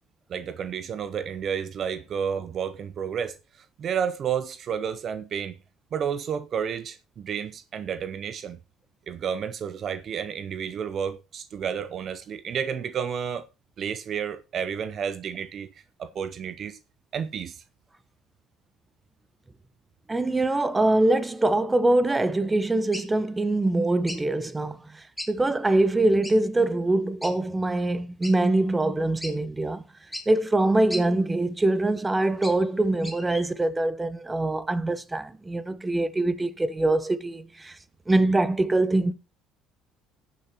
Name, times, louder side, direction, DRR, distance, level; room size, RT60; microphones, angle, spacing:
voice 1, 0.3-5.6 5.9-8.6 9.1-13.5 13.8-15.7 16.0-16.8 17.1-17.6, right 7 dB, 50° right, 0.6 m, -31 dB
voice 2, 20.1-29.8 30.3-37.8 38.1-39.1, right 2 dB, 15° right, 1.0 m, -24 dB
sound 1, 22.9-23.1 24.1-24.2 25.2-25.3 25.6-25.7 26.2-26.4 27.2-27.3 28.2-28.3 28.8-28.9 29.2-29.3 30.1-30.3 30.9-31.0 32.0-32.7 33.0-33.4, left 1 dB, 5° left, 2.5 m, -36 dB
18.5 x 6.7 x 2.9 m
hypercardioid pair, 70°, 0 cm